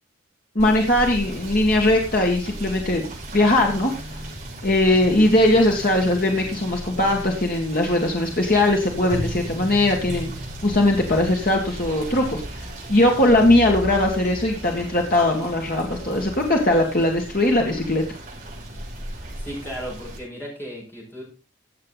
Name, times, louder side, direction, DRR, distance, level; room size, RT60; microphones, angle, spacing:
voice 1, 0.6-3.0 3.3-3.9 4.6-10.3 10.6-12.4 12.9-18.0, left 1 dB, 45° left, 1 dB, 2.0 m, -20 dB
Rain / Motor vehicle (road), 0.6-20.2, right 1 dB, 35° right, 6.7 m, -35 dB
voice 2, 19.2-21.2, equal, 10° left, -3 dB, 5.6 m, -35 dB
15.5 x 8.1 x 4.1 m, 0.31 s
head